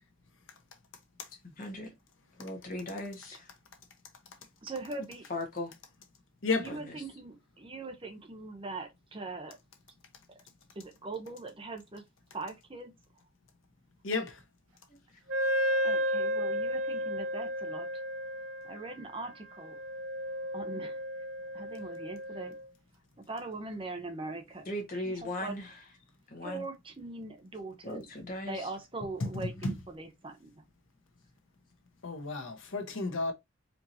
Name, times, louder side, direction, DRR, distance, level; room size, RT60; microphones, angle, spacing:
voice 1, 1.4-1.9 2.4-3.5 5.3-5.7 6.7-7.0 14.9-15.0 24.6-25.7 26.3-26.6 27.8-28.7, left 1 dB, 45° left, 1.4 m, -38 dB
voice 2, 4.6-5.3 6.5-9.6 10.3-10.4 10.7-12.0 12.3-12.9 15.8-18.0 18.6-19.8 20.5-21.0 21.5-22.6 23.3-24.7 24.9-25.6 26.4-28.1 28.5-30.5, right 3 dB, 25° right, 0.7 m, -41 dB
voice 3, 14.0-14.4 29.6-29.7 32.0-33.3, left 3 dB, 75° left, 1.0 m, -32 dB
Wind instrument woodwind instrument, 15.3-22.6, equal, 90° right, 0.7 m, -33 dB
4.5 x 2.9 x 2.7 m
head